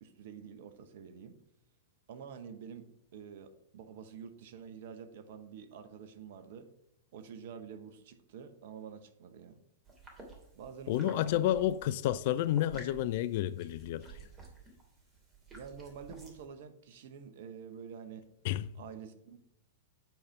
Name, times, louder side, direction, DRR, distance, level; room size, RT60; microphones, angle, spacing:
voice 1, 0.0-1.4 2.1-2.8 3.1-6.7 7.1-9.6 10.5-11.6 15.5-18.3 18.7-19.4, right 7 dB, 55° right, 1.0 m, -48 dB
sound 1, 9.9-16.4, right 3 dB, 25° right, 2.7 m, -52 dB
voice 2, 10.9-14.1 18.4-18.6, left 13 dB, 50° left, 0.4 m, -30 dB
9.1 x 4.1 x 5.9 m
figure-of-eight pair, 100°, 0 cm